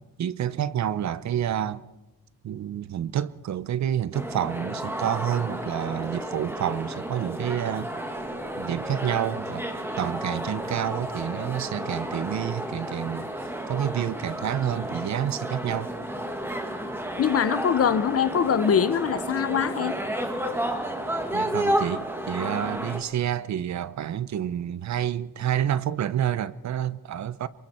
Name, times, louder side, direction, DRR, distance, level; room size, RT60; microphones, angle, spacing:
voice 1, 0.2-1.8 2.4-7.9 8.6-9.7 10.0-13.3 13.7-15.9 21.3-27.5, right 10 dB, 45° right, 0.7 m, -29 dB
sound 1, 4.1-23.0, right 1 dB, 5° right, 1.8 m, -32 dB
voice 2, 17.2-20.0, left 7 dB, 40° left, 0.8 m, -23 dB
27.0 x 23.5 x 4.4 m
cardioid pair, 180°, 37 cm